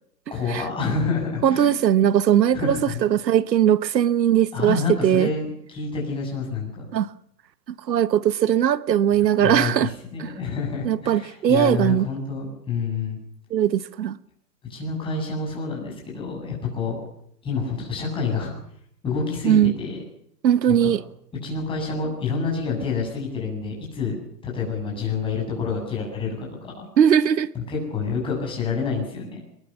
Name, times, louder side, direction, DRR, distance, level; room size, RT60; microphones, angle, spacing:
voice 1, 0.3-1.7 2.5-3.0 4.5-6.9 9.1-13.2 14.7-17.0 17.4-18.5 19.0-20.0 20.7-20.9 21.4-26.9 27.7-29.4, left 4 dB, 10° left, 7.8 m, -28 dB
voice 2, 1.4-5.3 6.9-7.1 7.9-9.9 10.2-10.3 10.8-12.1 13.5-14.2 19.4-19.7 20.4-21.0 27.0-27.5, right 10 dB, 85° right, 1.2 m, -19 dB
23.5 x 21.0 x 7.3 m
hypercardioid pair, 160°, 49 cm